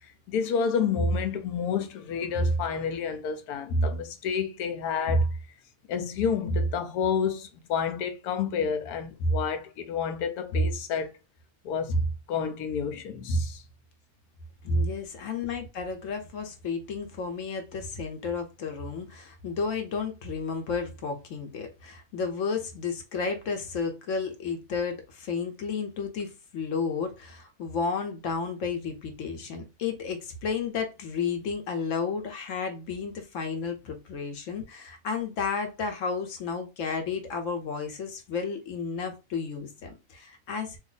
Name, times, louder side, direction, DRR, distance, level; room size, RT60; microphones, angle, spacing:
voice 1, 0.3-5.3 5.9-11.1 11.6-13.6 14.7-14.8, left 3 dB, 85° left, 1.1 m, -28 dB
voice 2, 14.6-40.8, left 5 dB, 65° left, 1.1 m, -32 dB
2.8 x 2.5 x 3.8 m
omnidirectional pair, 1.6 m